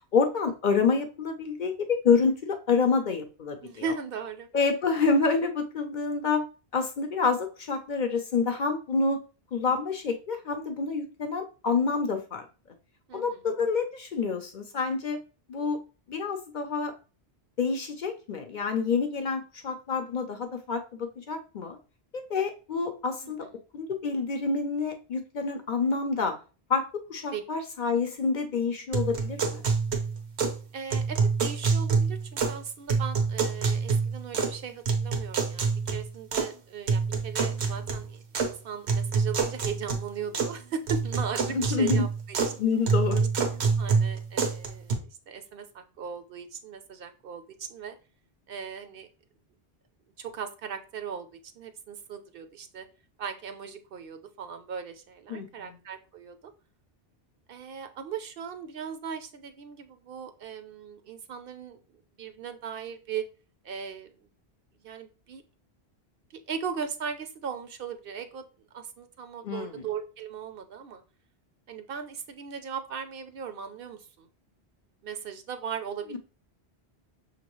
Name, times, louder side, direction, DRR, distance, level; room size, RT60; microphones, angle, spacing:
voice 1, 0.1-3.8 4.5-6.4 6.7-9.2 9.5-12.5 13.1-15.2 15.5-15.8 16.1-16.9 17.6-21.8 22.1-23.5 23.7-26.3 26.7-26.8 27.1-29.6 41.5-42.1 42.6-43.3 55.3-55.5 69.4-69.8 76.1-76.2, left 5 dB, 55° left, 6 dB, 0.6 m, -27 dB
voice 2, 3.6-4.5 13.1-13.4 23.2-23.6 27.3-27.4 30.7-42.6 43.8-48.0 48.5-49.1 50.2-52.9 53.2-56.4 57.5-61.8 62.2-63.2 63.6-64.2 64.8-65.4 66.5-68.5 68.7-71.0 71.7-74.3 75.0-76.2, right 7 dB, 65° right, 9 dB, 0.7 m, -38 dB
sound 1, 28.9-30.6 30.9-32.6 32.9-34.6 34.9-36.5 36.9-38.5 38.9-40.6 40.9-42.6 42.9-44.9, right 5 dB, 90° right, 1.1 m, -27 dB
6.0 x 2.9 x 3.0 m, 0.35 s
omnidirectional pair, 1.1 m